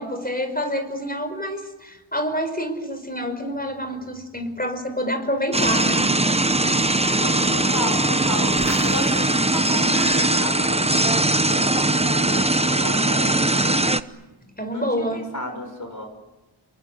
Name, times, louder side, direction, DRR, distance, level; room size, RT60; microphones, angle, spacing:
voice 1, 0.0-6.1 12.7-13.2 14.5-15.3, equal, 20° left, 7 dB, 5.3 m, -28 dB
sound 1, 5.5-14.0, right 2 dB, 15° right, 1.0 m, -20 dB
voice 2, 7.1-8.5 8.8-13.8 14.7-16.1, left 1 dB, 40° left, 4 dB, 6.7 m, -33 dB
sound 2, 8.4-11.5 11.8-12.2, right 2 dB, 35° right, 2.2 m, -36 dB
28.5 x 23.0 x 8.1 m, 1.1 s
wide cardioid pair, 65°, 47 cm